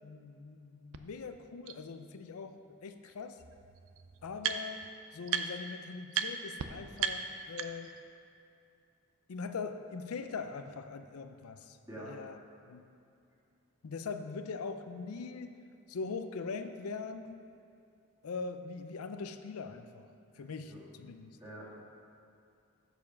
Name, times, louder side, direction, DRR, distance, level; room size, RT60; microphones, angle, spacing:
voice 1, 0.0-3.4 4.2-7.9 9.3-12.4 12.7-12.8 13.8-15.5 15.9-17.4 18.2-20.1 20.4-20.7 21.0-21.4, left 4 dB, 85° left, 8 dB, 0.5 m, -42 dB
sound 1, 0.9-1.0 1.7-1.8 3.0-3.1 3.4-4.9 5.3-5.7 6.1-6.3 6.6-6.7 7.0-8.0, right 9 dB, 70° right, 0.5 m, -35 dB
voice 2, 11.9-12.2 20.4-20.8 21.4-21.8, right 1 dB, 15° right, -7 dB, 1.9 m, -47 dB
7.3 x 6.9 x 5.8 m, 2.5 s
head